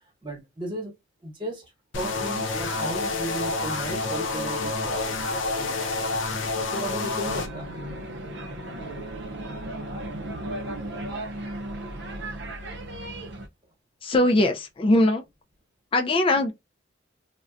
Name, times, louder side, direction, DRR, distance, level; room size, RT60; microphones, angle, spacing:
voice 1, 0.2-0.9 1.2-1.6 1.9-5.9 6.7-7.7, right 1 dB, 25° right, 1.1 m, -35 dB
sound 1, 1.9-7.5, left 3 dB, 70° left, 0.6 m, -28 dB
sound 2, 7.3-13.5, right 1 dB, 60° right, 0.5 m, -35 dB
voice 2, 14.0-15.2 15.9-16.5, left 1 dB, 25° left, 0.3 m, -21 dB
3.7 x 2.1 x 2.4 m
head